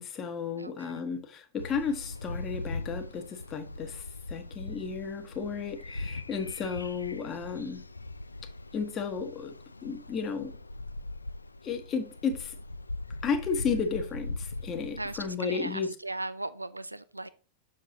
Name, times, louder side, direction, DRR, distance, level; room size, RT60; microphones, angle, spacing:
voice 1, 0.0-7.8 8.7-9.5 9.8-10.6 11.6-12.6 13.2-15.9, left 5 dB, 30° left, 1.0 m, -33 dB
voice 2, 0.5-1.0 15.0-17.3, right 2 dB, 85° right, 0.4 m, -38 dB
sound 1, 1.6-15.3, left 2 dB, 80° left, 0.3 m, -40 dB
6.6 x 6.6 x 2.8 m
figure-of-eight pair, 90°, 0 cm